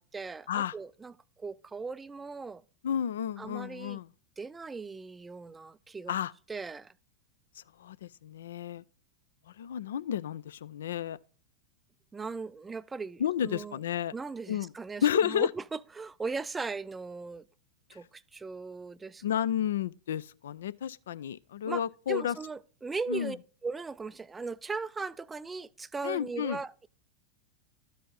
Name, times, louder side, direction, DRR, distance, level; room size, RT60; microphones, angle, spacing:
voice 1, 0.0-2.6 3.4-4.0 4.4-6.1 6.5-6.9 12.1-13.8 14.1-17.4 17.9-19.2 21.7-21.8 22.1-26.9, right 4 dB, 15° right, 0.3 m, -38 dB
voice 2, 2.8-4.1 6.1-6.3 7.8-8.8 9.6-11.2 13.2-14.1 14.5-14.7 15.0-15.5 19.2-22.4 23.1-23.3 26.0-26.6, left 9 dB, 60° left, 0.4 m, -31 dB
13.0 x 5.1 x 3.9 m
figure-of-eight pair, 90°, 0 cm